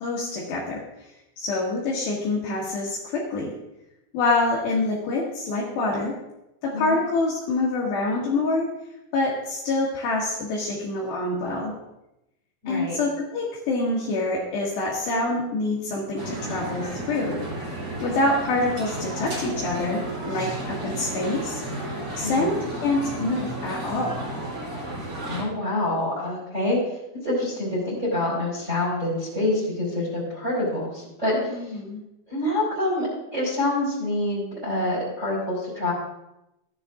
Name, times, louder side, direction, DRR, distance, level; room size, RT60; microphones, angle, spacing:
voice 1, 0.0-3.5 4.1-6.2 6.6-8.7 9.1-11.7 12.7-17.4 18.0-24.3 31.3-32.0, left 2 dB, 70° left, -4 dB, 3.1 m, -26 dB
voice 2, 12.6-13.0 22.2-22.6 25.2-26.8 27.2-31.5 32.3-35.9, left 1 dB, 15° right, -4 dB, 3.4 m, -26 dB
sound 1, 16.2-25.4, right 1 dB, 35° right, 3.0 m, -33 dB
15.0 x 10.0 x 2.5 m, 0.89 s
omnidirectional pair, 6.0 m